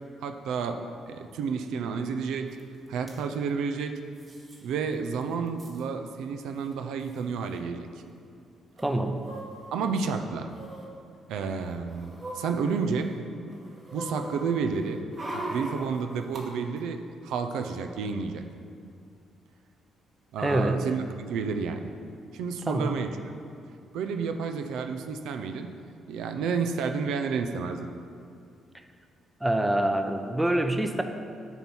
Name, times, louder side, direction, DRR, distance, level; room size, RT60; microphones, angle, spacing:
voice 1, 0.2-2.6 2.9-3.9 4.6-7.9 9.7-10.5 11.3-13.1 13.9-15.0 15.3-18.4 20.3-21.0 21.3-21.9 22.3-23.1 23.9-25.7 26.1-27.9, right 5 dB, 85° right, 6 dB, 0.5 m, -30 dB
sound 1, 2.6-2.7 2.9-3.2 4.2-4.6 4.9-5.0 5.2-5.8 6.7-6.8 7.0-7.2 8.8-9.9 10.5-10.9 11.5-13.1 13.5-16.4 16.8-16.9, right 1 dB, 40° right, 1.6 m, -40 dB
voice 2, 8.8-9.2 20.4-20.8 22.7-23.0 29.4-31.0, right 1 dB, 10° right, 7 dB, 0.6 m, -26 dB
9.4 x 4.6 x 5.5 m, 2.4 s
cardioid pair, 90°, 0 cm